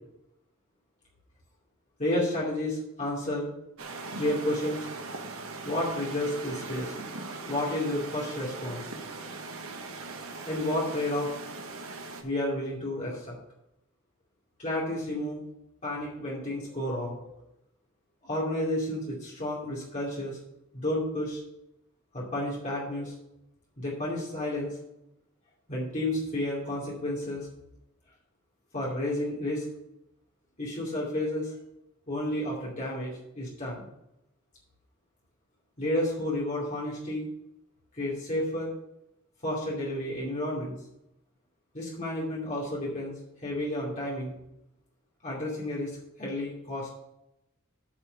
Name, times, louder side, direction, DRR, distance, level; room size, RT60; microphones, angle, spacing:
voice 1, 2.0-3.5 4.2-4.9 5.6-6.9 7.5-8.9 10.4-11.3 12.2-13.4 14.6-15.4 15.8-17.3 18.2-20.4 20.7-21.4 22.1-23.1 23.8-24.7 25.7-27.5 28.7-29.6 30.6-31.5 32.1-33.9 35.8-37.3 38.0-38.7 39.4-40.8 41.7-43.1 43.4-44.3 45.2-46.9, left 1 dB, 35° left, -5 dB, 2.6 m, -31 dB
sound 1, 3.8-12.2, right 3 dB, 90° right, 1.2 m, -40 dB
8.7 x 5.1 x 6.9 m, 0.83 s
head